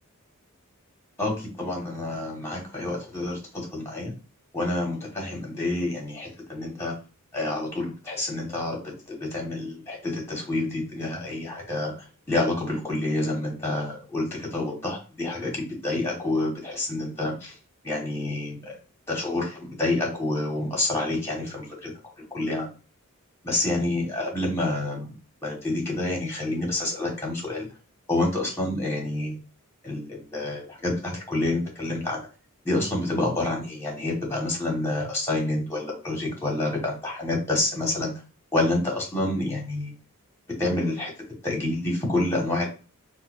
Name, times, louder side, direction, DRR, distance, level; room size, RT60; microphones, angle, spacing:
voice 1, 1.2-4.1 4.5-6.9 7.3-8.8 9.1-11.9 12.3-17.5 17.8-18.8 19.1-21.9 22.3-22.7 23.4-25.1 25.4-27.7 28.1-29.4 29.8-32.2 32.6-38.1 38.5-39.9 40.6-41.1 41.4-42.7, left 2 dB, 10° left, -1 dB, 1.1 m, -28 dB
4.0 x 2.2 x 2.3 m, 0.34 s
head